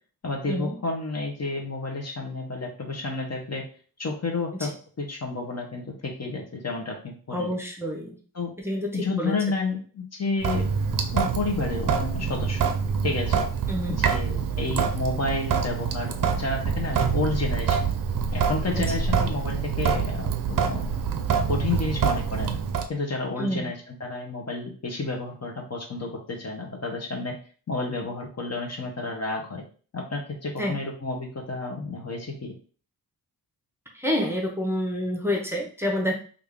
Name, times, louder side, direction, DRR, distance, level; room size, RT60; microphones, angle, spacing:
voice 1, 0.2-3.6 4.0-4.7 5.0-7.5 8.3-8.5 8.9-10.8 11.1-12.6 13.0-13.4 13.9-17.9 18.3-20.9 21.5-22.6 22.9-27.3 27.7-29.6 29.9-32.5, left 3 dB, 45° left, 1 dB, 0.7 m, -30 dB
voice 2, 7.3-8.2 8.6-9.4 13.7-14.0 18.8-19.0 23.4-23.7 30.6-30.8 33.9-36.1, equal, 5° right, -1 dB, 0.7 m, -28 dB
Sink (filling or washing) / Drip, 10.4-22.9, right 6 dB, 60° right, 0.5 m, -26 dB
3.4 x 2.4 x 3.5 m, 0.40 s
wide cardioid pair, 125°, 38 cm